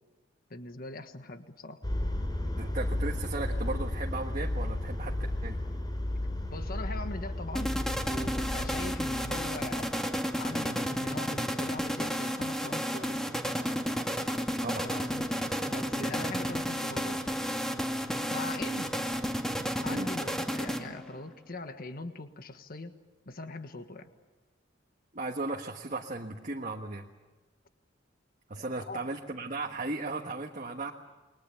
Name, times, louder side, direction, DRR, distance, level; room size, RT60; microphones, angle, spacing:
voice 1, 0.5-1.8 6.5-7.8 8.1-9.9 10.4-13.2 14.8-15.2 15.7-17.2 18.3-18.9 19.8-23.0 23.2-24.1 28.5-29.1, left 2 dB, 50° left, 8 dB, 1.5 m, -41 dB
sound 1, 1.8-10.1, left 1 dB, 25° left, 3.1 m, -33 dB
voice 2, 2.6-5.2 5.4-5.6 8.8-8.9 14.6-14.9 15.9-16.1 19.9-20.1 25.1-27.0 28.5-30.9, right 2 dB, 40° right, 1 dB, 1.5 m, -36 dB
sound 2, 7.6-21.2, equal, 5° left, 2.1 m, -32 dB
29.0 x 22.5 x 7.0 m, 1.2 s
head